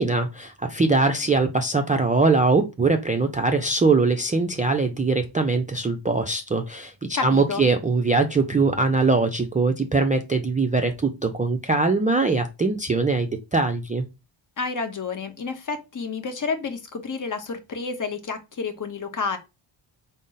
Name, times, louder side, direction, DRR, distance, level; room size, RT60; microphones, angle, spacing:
voice 1, 0.0-6.9 7.2-14.0, right 3 dB, 20° right, 0.3 m, -22 dB
voice 2, 7.1-7.7 14.6-19.4, left 4 dB, 40° left, 0.8 m, -30 dB
3.8 x 2.0 x 3.8 m
cardioid pair, 75°, 48 cm